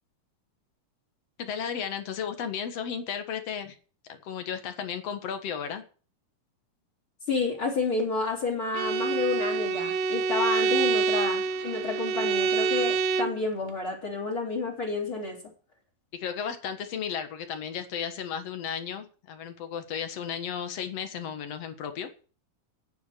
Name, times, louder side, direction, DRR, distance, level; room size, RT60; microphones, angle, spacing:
voice 1, 1.4-3.7 4.1-5.8 16.1-22.1, left 7 dB, 55° left, 8 dB, 2.2 m, -34 dB
voice 2, 7.3-15.4, left 3 dB, 35° left, 1 dB, 4.0 m, -30 dB
Bowed string instrument, 8.7-13.4, right 5 dB, 75° right, 2.7 m, -26 dB
9.8 x 9.3 x 8.4 m, 0.39 s
omnidirectional pair, 4.1 m